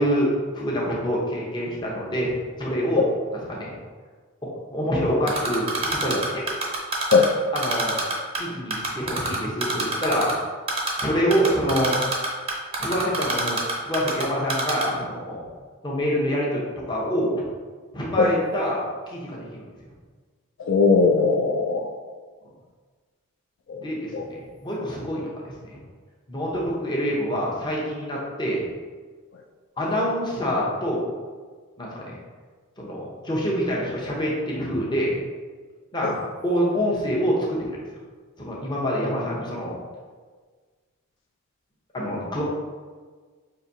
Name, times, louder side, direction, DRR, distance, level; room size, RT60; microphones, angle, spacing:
voice 1, 0.0-2.3 2.6-3.1 3.5-3.7 4.4-6.4 7.5-8.0 8.4-10.4 11.0-12.0 12.8-15.4 15.8-17.4 17.9-19.5 23.8-25.8 26.3-28.7 29.8-31.1 31.8-32.2 32.8-35.2 35.9-36.2 36.4-37.8 38.4-39.8 41.9-42.4, equal, 20° left, -4 dB, 0.7 m, -26 dB
Typing, 5.3-7.3 7.6-8.4 8.7-10.3 10.7-11.0 11.3-14.2 14.5-14.8, right 3 dB, 25° right, 0.5 m, -25 dB
voice 2, 20.6-21.9 23.7-23.8 24.1-24.2 36.0-36.1, left 4 dB, 55° left, 1 dB, 0.3 m, -19 dB
5.6 x 2.6 x 2.6 m, 1.5 s
head